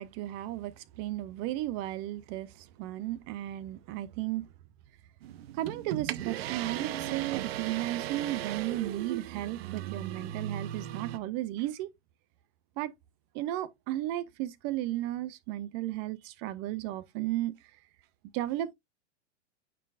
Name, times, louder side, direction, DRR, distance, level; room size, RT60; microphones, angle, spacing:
voice 1, 0.0-4.5 5.5-11.9 12.8-12.9 13.3-17.5 18.3-18.7, right 15 dB, 25° right, 0.4 m, -34 dB
sound 1, 5.2-11.2, right 12 dB, 60° right, 0.8 m, -37 dB
8.9 x 4.5 x 2.4 m
hypercardioid pair, 140°, 35 cm